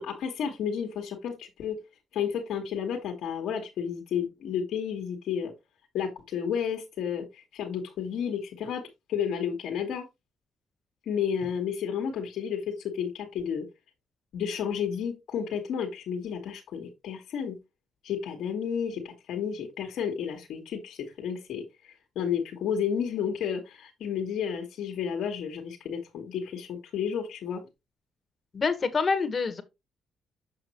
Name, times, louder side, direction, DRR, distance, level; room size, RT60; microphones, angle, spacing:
voice 1, 0.0-1.8 2.1-5.5 5.9-8.8 9.1-10.0 11.0-13.7 14.3-17.6 18.0-27.6, left 7 dB, 75° left, 1.6 m, -32 dB
voice 2, 28.5-29.6, left 4 dB, 40° left, 1.4 m, -26 dB
6.8 x 5.8 x 3.1 m
cardioid pair, 90°, 0 cm